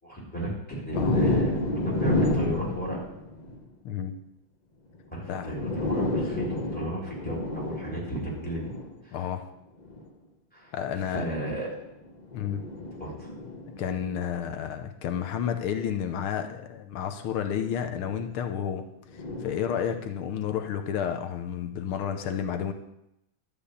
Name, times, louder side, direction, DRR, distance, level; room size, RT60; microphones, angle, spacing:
voice 1, 0.0-3.0 5.1-8.7 9.0-9.2 10.5-10.7 11.1-11.7 13.0-13.3, equal, 5° left, -4 dB, 4.0 m, -33 dB
sound 1, 0.9-3.6 4.9-5.0 5.4-9.0 9.8-10.1 11.3-14.2 15.7-15.8 17.5-18.3 19.1-20.5, left 2 dB, 30° left, 0.8 m, -31 dB
voice 2, 3.9-4.2 5.3-5.6 9.1-9.5 10.7-11.3 12.3-12.6 13.8-18.9 19.1-22.7, left 8 dB, 85° left, 7 dB, 1.7 m, -31 dB
11.5 x 5.4 x 8.4 m, 0.84 s
omnidirectional pair, 2.3 m